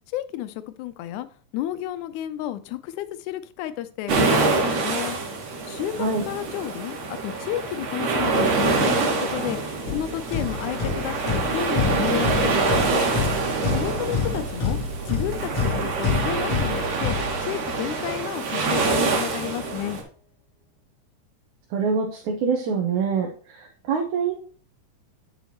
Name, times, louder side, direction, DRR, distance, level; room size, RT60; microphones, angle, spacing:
voice 1, 0.1-1.3 1.5-5.2 5.7-13.1 13.7-14.8 15.1-20.0, left 13 dB, 85° left, 12 dB, 2.0 m, -31 dB
sound 1, 4.1-20.0, right 3 dB, 60° right, 2.6 m, -25 dB
sound 2, 9.9-17.9, left 4 dB, 55° left, 2.3 m, -28 dB
sound 3, 18.8-20.3, left 1 dB, 30° left, 1.9 m, -44 dB
voice 2, 21.7-24.3, right 5 dB, 75° right, 0 dB, 2.5 m, -25 dB
9.3 x 5.6 x 3.0 m, 0.43 s
omnidirectional pair, 3.5 m